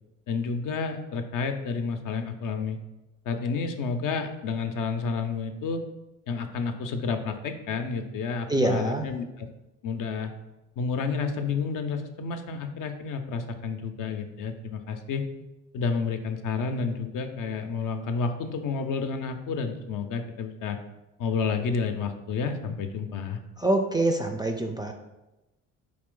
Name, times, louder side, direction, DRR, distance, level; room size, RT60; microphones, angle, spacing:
voice 1, 0.3-2.8 3.3-5.8 6.3-9.5 9.8-10.3 10.8-15.3 15.7-20.8 21.2-23.4, left 5 dB, 55° left, 6 dB, 0.6 m, -30 dB
voice 2, 8.5-9.1 23.6-24.9, right 2 dB, 10° right, 4 dB, 0.4 m, -25 dB
4.3 x 2.5 x 3.7 m, 0.99 s
hypercardioid pair, 55°, 37 cm